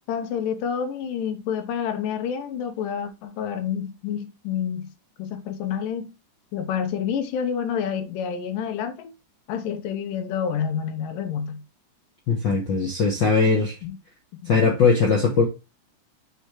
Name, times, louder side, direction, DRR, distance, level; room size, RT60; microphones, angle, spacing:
voice 1, 0.1-4.9 5.2-6.1 6.5-9.1 9.5-11.6 13.8-14.0 14.4-14.5, left 8 dB, 85° left, 2.6 m, -28 dB
voice 2, 12.3-13.8 14.5-15.4, left 4 dB, 65° left, 1.1 m, -20 dB
6.9 x 3.4 x 4.5 m
omnidirectional pair, 3.8 m